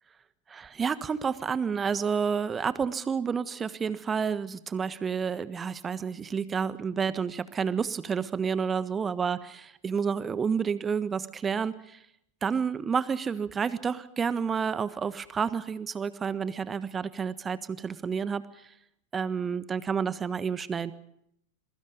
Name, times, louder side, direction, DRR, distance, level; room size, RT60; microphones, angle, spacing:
voice 1, 0.5-12.0 12.4-18.4 19.1-20.9, right 6 dB, 20° right, 15 dB, 1.3 m, -30 dB
27.0 x 22.5 x 5.3 m, 0.75 s
figure-of-eight pair, 90°, 0 cm